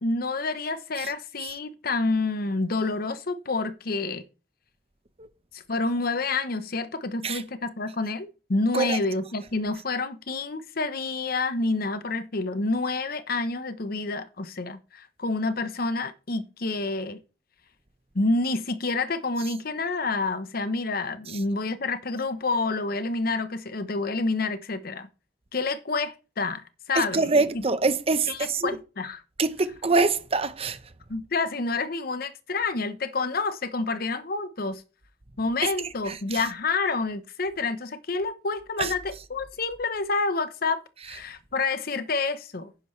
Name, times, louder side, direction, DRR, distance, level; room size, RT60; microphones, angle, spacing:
voice 1, 0.0-4.2 5.5-17.2 18.1-25.1 25.5-27.3 28.3-29.2 31.1-34.8 35.4-40.8 41.1-42.7, left 3 dB, 55° left, 0.9 m, -28 dB
voice 2, 26.9-28.8 29.4-30.8 36.1-36.4 38.8-38.9, right 3 dB, 35° right, 0.9 m, -24 dB
10.5 x 9.5 x 3.2 m
head